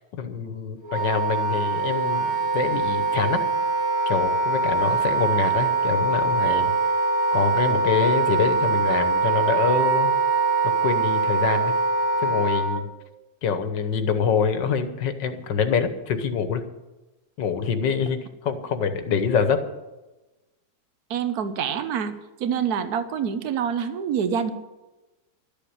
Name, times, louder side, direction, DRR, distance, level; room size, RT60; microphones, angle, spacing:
voice 1, 0.2-2.3 2.5-3.4 4.1-6.7 7.3-10.1 10.8-11.8 12.2-12.9 13.4-16.6 17.4-19.6, left 6 dB, 90° left, 9 dB, 1.8 m, -25 dB
Wind instrument woodwind instrument, 0.8-12.8, right 4 dB, 10° left, 1.4 m, -23 dB
voice 2, 21.1-22.1 22.4-24.5, right 7 dB, 65° right, 10 dB, 1.4 m, -26 dB
12.5 x 7.0 x 9.6 m, 1.1 s
omnidirectional pair, 1.9 m